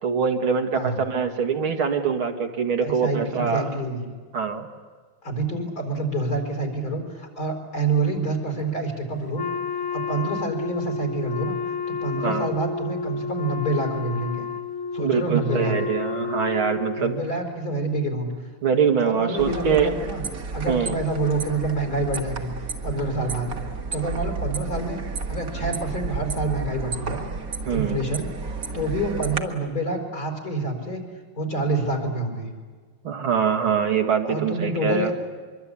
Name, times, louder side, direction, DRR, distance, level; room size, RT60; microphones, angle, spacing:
voice 1, 0.0-3.7 4.3-4.7 12.2-12.5 15.0-17.2 18.6-20.0 20.7-21.0 27.7-28.0 33.0-35.1, right 6 dB, 80° right, 4 dB, 2.8 m, -23 dB
voice 2, 2.8-4.0 5.2-9.5 9.9-11.6 11.9-14.5 14.9-15.7 17.0-18.3 19.0-20.2 20.5-22.5 22.8-23.5 23.9-25.0 25.3-27.3 27.7-28.3 28.7-31.0 31.4-32.5 34.3-35.1, right 2 dB, 45° left, 3 dB, 5.3 m, -27 dB
Wind instrument woodwind instrument, 9.3-17.3, left 6 dB, 25° left, 0.5 m, -31 dB
sound 1, 19.4-29.4, right 4 dB, 45° right, 2.0 m, -32 dB
24.5 x 24.0 x 8.6 m, 1.5 s
omnidirectional pair, 2.3 m